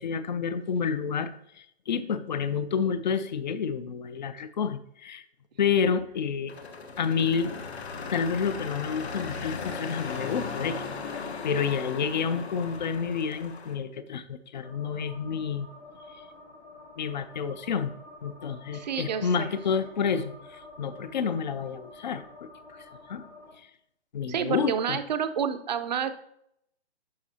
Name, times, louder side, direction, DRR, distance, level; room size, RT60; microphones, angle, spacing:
voice 1, 0.0-5.2 5.6-6.5 7.0-7.5 8.1-10.8 11.4-15.7 17.0-17.9 18.2-22.2 22.8-23.3 23.6-23.7 24.1-25.0, left 6 dB, 45° left, 14 dB, 0.5 m, -29 dB
sound 1, 6.5-13.8, left 5 dB, 75° left, 1.4 m, -37 dB
sound 2, 14.6-23.5, left 2 dB, 5° left, 0.7 m, -49 dB
voice 2, 18.7-19.5 24.3-26.1, right 8 dB, 40° right, 11 dB, 0.6 m, -29 dB
11.5 x 4.7 x 2.8 m, 0.75 s
hypercardioid pair, 150°, 33 cm